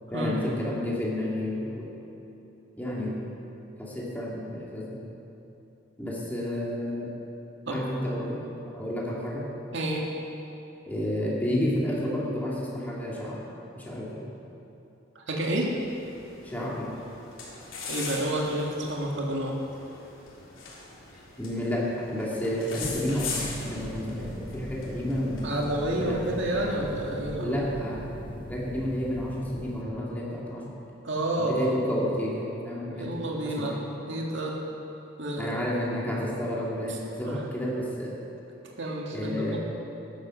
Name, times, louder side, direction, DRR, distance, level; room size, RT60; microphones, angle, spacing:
voice 1, 0.1-1.9 2.8-3.2 3.8-5.0 6.0-7.1 7.7-9.5 10.8-13.4 13.8-14.3 16.4-16.9 21.4-25.6 26.0-26.3 27.4-28.0 28.5-30.7 31.4-33.3 33.6-33.7 35.4-38.1 39.1-39.6, equal, 10° left, -5 dB, 2.4 m, -31 dB
voice 2, 9.7-10.0 15.2-15.7 17.8-19.6 25.4-27.6 31.0-31.7 32.9-33.8 34.1-34.6 35.2-35.6 37.3-37.4 38.8-39.6, right 1 dB, 65° right, -1 dB, 2.0 m, -29 dB
sound 1, 15.7-27.4, left 4 dB, 85° left, 3.1 m, -41 dB
sound 2, 22.8-29.8, left 1 dB, 25° left, 1.1 m, -39 dB
13.5 x 10.5 x 6.4 m, 3.0 s
head